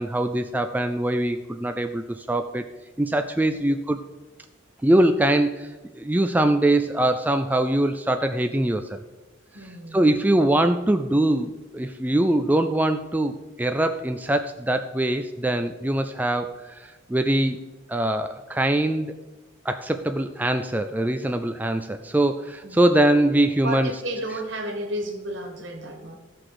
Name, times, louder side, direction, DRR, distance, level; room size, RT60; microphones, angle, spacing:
voice 1, 0.0-2.6 3.0-4.0 4.8-5.7 6.0-9.0 9.9-17.6 17.9-19.2 19.7-23.9, right 1 dB, 10° right, 7 dB, 0.3 m, -23 dB
voice 2, 9.5-10.1 22.6-22.9 23.6-26.2, right 1 dB, 70° right, 4 dB, 1.7 m, -32 dB
15.5 x 6.0 x 4.9 m, 1.2 s
head